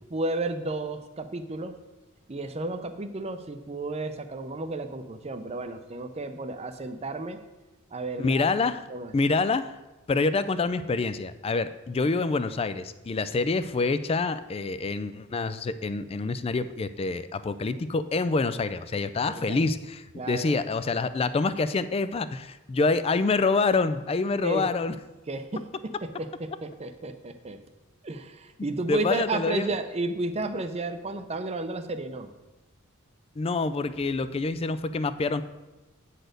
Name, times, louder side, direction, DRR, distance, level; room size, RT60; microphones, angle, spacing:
voice 1, 0.1-1.7 2.3-7.4 7.9-8.4 8.9-9.1 19.2-19.6 20.2-20.6 24.4-24.7 25.3-27.6 28.0-32.3, right 2 dB, 30° right, 8 dB, 0.6 m, -32 dB
voice 2, 8.2-8.9 9.1-9.8 10.1-25.0 28.9-29.7 33.4-35.4, left 3 dB, 25° left, 13 dB, 0.3 m, -26 dB
9.1 x 4.2 x 6.5 m, 1.1 s
head